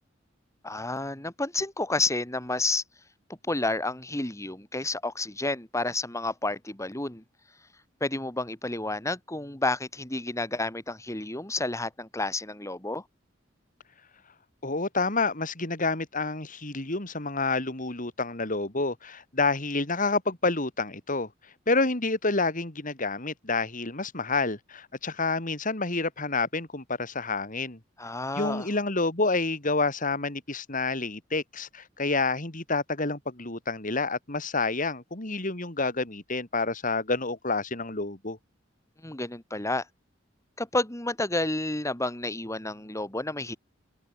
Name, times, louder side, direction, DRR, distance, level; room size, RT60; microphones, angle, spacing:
voice 1, 0.6-2.8 3.5-7.2 8.0-13.0 28.0-28.7 39.0-39.8 40.6-43.6, left 2 dB, 15° left, 3.3 m, -30 dB
voice 2, 14.6-21.3 21.7-27.8 28.3-38.4, left 3 dB, 45° left, 3.3 m, -28 dB
head